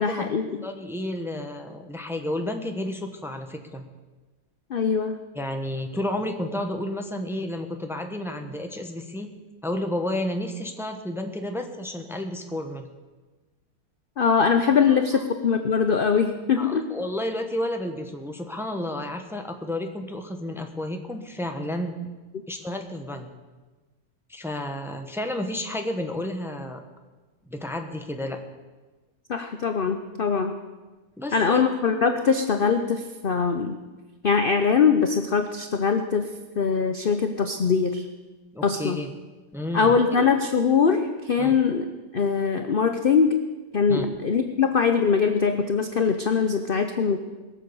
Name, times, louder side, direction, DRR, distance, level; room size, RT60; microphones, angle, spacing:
voice 1, 0.0-0.6 4.7-5.2 14.2-16.9 29.3-30.5 31.3-33.8 34.2-36.3 36.6-38.1 38.6-39.0 39.7-41.9 42.1-43.4 43.7-47.2, left 6 dB, 45° left, 7 dB, 0.8 m, -22 dB
voice 2, 0.6-3.8 5.3-9.3 9.6-12.9 14.9-15.2 16.6-21.9 22.5-23.3 24.3-26.8 27.5-28.4 31.2-31.6 38.5-39.1 39.5-40.3 41.4-41.5 43.9-44.1, left 1 dB, ahead, 4 dB, 1.0 m, -31 dB
21.5 x 7.5 x 7.1 m, 1.3 s
omnidirectional pair, 1.7 m